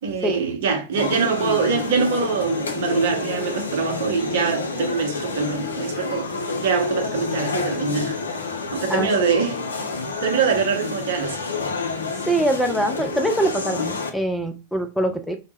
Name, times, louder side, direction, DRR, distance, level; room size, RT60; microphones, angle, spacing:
voice 1, 0.0-6.3 6.6-8.2 8.7-9.6 10.2-11.4, right 5 dB, 55° right, 0.7 m, -23 dB
sound 1, 1.0-14.1, left 4 dB, 70° left, 0.4 m, -28 dB
voice 2, 12.2-15.4, right 1 dB, 5° left, 0.4 m, -23 dB
2.1 x 2.0 x 3.2 m
figure-of-eight pair, 90°, 0 cm